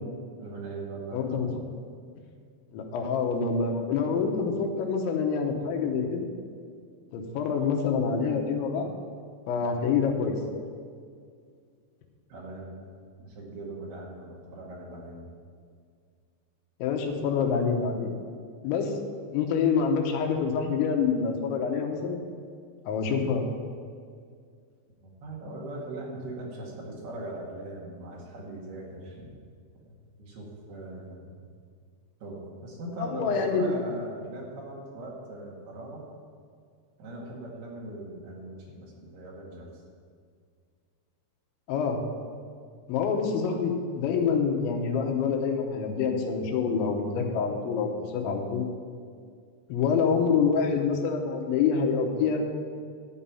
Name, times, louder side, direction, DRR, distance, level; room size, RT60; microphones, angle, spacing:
voice 1, 0.4-1.5 12.3-12.8 13.2-15.3 25.0-29.3 29.9-31.4 32.2-36.0 37.0-39.7, right 2 dB, 65° right, -3 dB, 3.7 m, -40 dB
voice 2, 1.1-1.5 2.7-6.3 7.1-8.9 9.5-10.4 16.8-18.1 18.6-18.9 19.3-22.2 22.9-23.4 33.0-33.7 41.7-42.0 42.9-48.7 49.7-52.4, left 5 dB, 90° left, 3 dB, 3.5 m, -26 dB
12.0 x 5.6 x 8.9 m, 2.2 s
omnidirectional pair, 5.2 m